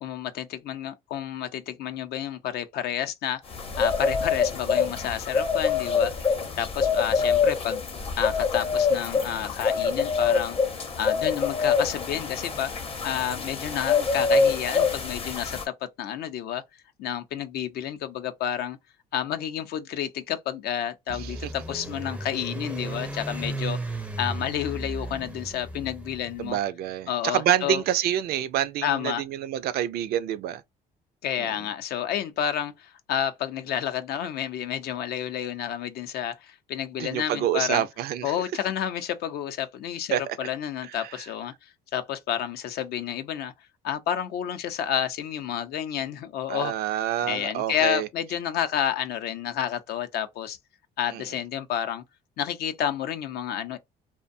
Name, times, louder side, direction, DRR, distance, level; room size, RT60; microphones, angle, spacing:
voice 1, 0.0-3.4 3.8-6.1 6.6-7.8 8.2-10.6 11.0-16.6 17.0-18.8 19.1-23.8 24.2-26.6 27.1-27.8 28.8-29.2 31.2-37.9 38.2-43.5 43.8-46.7 47.2-50.6 51.0-52.0 52.4-53.8, left 10 dB, 70° left, 0.5 m, -30 dB
sound 1, 3.5-15.6, left 5 dB, 35° left, 0.7 m, -25 dB
sound 2, 21.1-26.5, right 2 dB, 5° right, 0.4 m, -35 dB
voice 2, 21.1-21.5 26.4-30.6 31.4-31.5 37.0-38.3 40.1-40.4 40.8-41.3 46.5-48.1 51.1-51.2, right 11 dB, 70° right, 0.4 m, -27 dB
2.6 x 2.1 x 2.5 m
cardioid pair, 110°, 17 cm